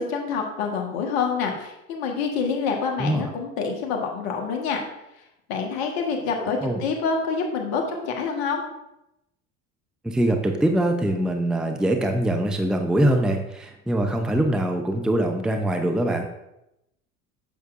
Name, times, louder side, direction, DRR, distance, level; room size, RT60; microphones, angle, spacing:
voice 1, 0.0-4.8 5.5-8.6, left 5 dB, 65° left, 2 dB, 1.5 m, -27 dB
voice 2, 3.0-3.3 6.4-6.8 10.0-16.3, right 1 dB, ahead, 5 dB, 0.6 m, -23 dB
8.4 x 5.9 x 2.5 m, 0.88 s
hypercardioid pair, 75°, 41 cm